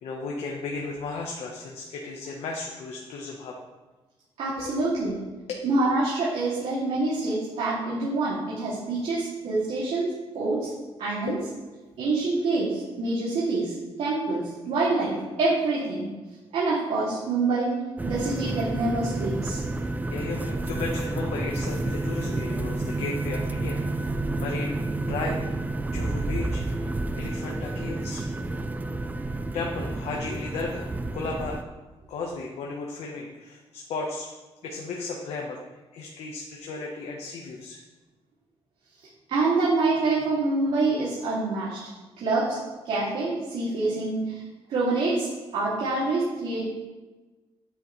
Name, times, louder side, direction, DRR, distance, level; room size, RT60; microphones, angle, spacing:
voice 1, 0.0-3.6 4.6-4.7 5.5-5.6 11.2-11.4 19.8-26.6 27.2-28.2 29.5-31.6 32.1-34.3 34.6-35.6 35.9-37.8, left 3 dB, 85° left, 0 dB, 1.2 m, -35 dB
voice 2, 4.4-5.2 5.6-10.7 11.0-11.4 12.0-16.1 16.5-17.7 18.0-19.6 39.3-41.8 42.2-42.6 42.8-44.4 44.7-45.3 45.5-46.6, right 3 dB, 75° right, -8 dB, 2.8 m, -26 dB
sound 1, 18.0-31.6, right 2 dB, 15° right, 0.4 m, -30 dB
9.5 x 9.1 x 3.3 m, 1.2 s
cardioid pair, 155°, 11 cm